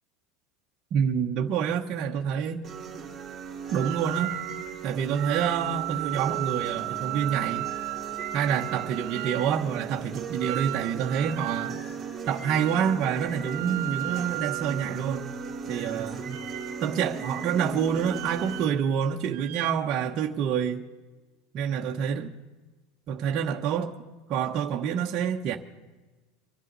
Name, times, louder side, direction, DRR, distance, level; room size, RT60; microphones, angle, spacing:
voice 1, 0.9-2.6 3.7-4.3 4.8-7.7 8.3-11.7 12.3-15.4 15.7-16.4 16.8-20.8 21.5-22.3 23.1-23.9 24.3-25.6, right 8 dB, 40° right, 1.2 m, -27 dB
sound 1, 2.6-18.7, right 5 dB, 20° right, 3.0 m, -38 dB
sound 2, 3.8-4.7 5.1-9.5 10.4-11.8 12.5-13.0 13.3-15.6 16.2-17.0 18.0-19.0 19.3-19.7, right 19 dB, 65° right, 0.5 m, -35 dB
25.5 x 11.0 x 4.1 m
supercardioid pair, 130°, 0 cm